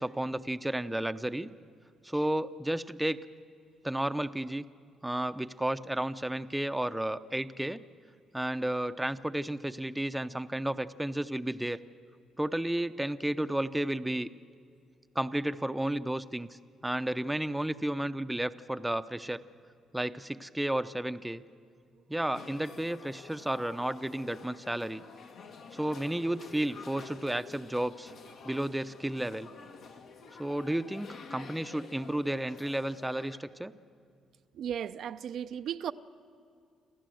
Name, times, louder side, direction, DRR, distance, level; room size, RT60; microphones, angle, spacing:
voice 1, 0.0-1.5 2.0-3.2 3.8-4.7 5.0-7.8 8.3-11.8 12.4-14.3 15.1-16.5 16.8-19.4 19.9-21.4 22.1-25.0 25.7-28.1 28.4-29.5 30.4-33.7, right 1 dB, 5° right, 11 dB, 0.6 m, -32 dB
sound 1, 22.3-33.4, left 5 dB, 75° left, 2.0 m, -49 dB
voice 2, 34.5-35.9, right 9 dB, 70° right, 10 dB, 0.5 m, -35 dB
27.5 x 14.5 x 7.7 m, 2.4 s
cardioid pair, 90°, 0 cm